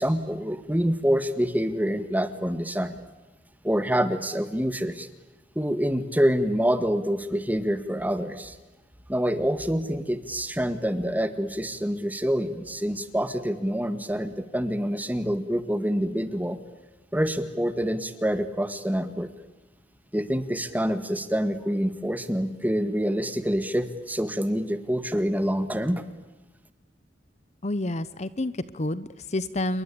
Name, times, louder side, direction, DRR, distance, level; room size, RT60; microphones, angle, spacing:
voice 1, 0.0-3.0 3.6-5.1 5.6-8.6 9.1-16.6 17.1-19.3 20.1-26.1, equal, 10° right, 11 dB, 1.9 m, -26 dB
voice 2, 27.6-29.8, left 1 dB, 40° left, 16 dB, 0.9 m, -29 dB
28.0 x 23.5 x 8.6 m, 1.1 s
head